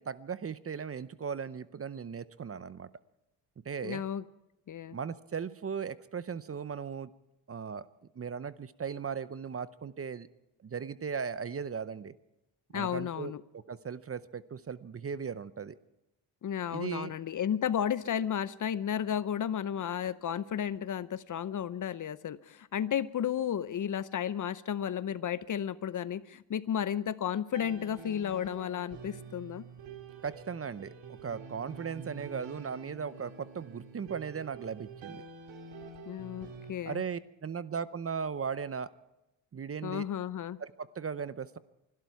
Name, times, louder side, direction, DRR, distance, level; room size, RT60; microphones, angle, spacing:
voice 1, 0.0-2.9 3.6-4.0 4.9-7.1 7.5-7.9 8.2-10.3 10.6-12.1 12.7-15.8 16.7-17.1 30.2-35.2 36.8-38.9 39.5-40.0 40.6-41.6, right 6 dB, 30° right, 16 dB, 0.7 m, -37 dB
voice 2, 3.8-4.2 4.7-5.0 12.7-13.4 16.4-29.6 36.1-37.0 39.8-40.6, left 9 dB, 45° left, 17 dB, 0.7 m, -33 dB
sound 1, 27.5-36.7, right 4 dB, 80° right, 2.5 m, -47 dB
25.0 x 12.5 x 4.7 m, 0.91 s
cardioid pair, 80°, 45 cm